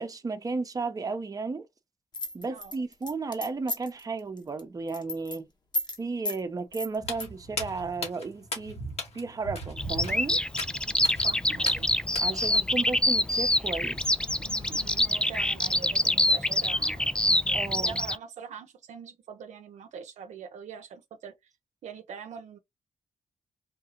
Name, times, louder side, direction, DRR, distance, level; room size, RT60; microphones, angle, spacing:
voice 1, 0.0-1.7 2.3-5.5 6.0-8.8 9.1-10.4 12.2-14.0 17.5-18.0, right 4 dB, 30° right, 0.7 m, -34 dB
sound 1, 2.1-4.0 4.4-4.6 4.9-5.4 5.7-6.0 6.2-6.4 6.7-7.3, left 1 dB, 35° left, 1.1 m, -33 dB
Walk footsteps, 7.0-12.6, left 1 dB, 60° left, 1.5 m, -38 dB
Bird vocalization bird call bird song, 9.8-18.2, left 1 dB, 5° left, 0.3 m, -26 dB
voice 2, 11.2-11.9 14.4-21.3 21.8-22.6, right 7 dB, 70° right, 0.7 m, -44 dB
3.7 x 2.3 x 2.8 m
supercardioid pair, 50°, 12 cm